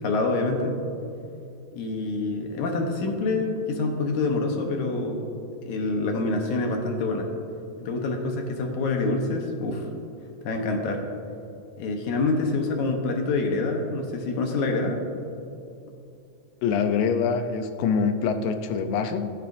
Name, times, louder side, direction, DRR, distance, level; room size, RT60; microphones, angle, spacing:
voice 1, 0.0-0.8 1.7-5.2 5.7-7.3 7.8-9.9 10.5-11.0 11.8-15.0, left 3 dB, 70° left, 2 dB, 2.2 m, -26 dB
voice 2, 16.6-19.3, left 6 dB, 90° left, 8 dB, 2.5 m, -25 dB
15.5 x 12.0 x 2.6 m, 2.6 s
omnidirectional pair, 4.0 m